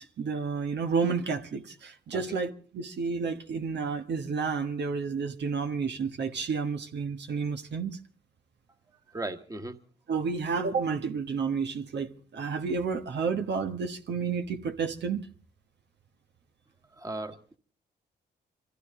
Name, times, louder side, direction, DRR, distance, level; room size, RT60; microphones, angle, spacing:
voice 1, 0.0-7.9 10.1-15.2, right 5 dB, 70° right, 1.5 m, -31 dB
voice 2, 9.1-9.8 16.9-17.6, right 2 dB, 20° right, 1.6 m, -37 dB
25.0 x 15.0 x 3.8 m
cardioid pair, 80°, 18 cm